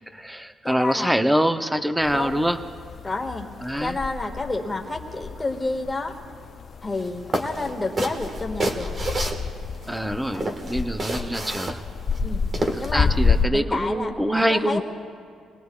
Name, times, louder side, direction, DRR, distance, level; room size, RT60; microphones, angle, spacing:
voice 1, 0.1-2.6 3.6-4.0 9.9-11.8 12.7-14.8, equal, 5° right, 9 dB, 0.6 m, -24 dB
voice 2, 0.6-1.1 2.1-2.4 3.0-3.5 3.8-6.1 6.8-9.0 10.3-10.5 12.2-12.4 12.8-13.1 13.5-14.8, left 2 dB, 20° left, 2 dB, 1.8 m, -29 dB
sound 1, 2.0-13.5, left 5 dB, 45° left, 0.5 m, -29 dB
sound 2, 6.9-7.1 7.3-10.0 10.3-12.9, right 1 dB, 35° right, 1.5 m, -29 dB
27.5 x 20.5 x 2.4 m, 2.1 s
cardioid pair, 90°, 0 cm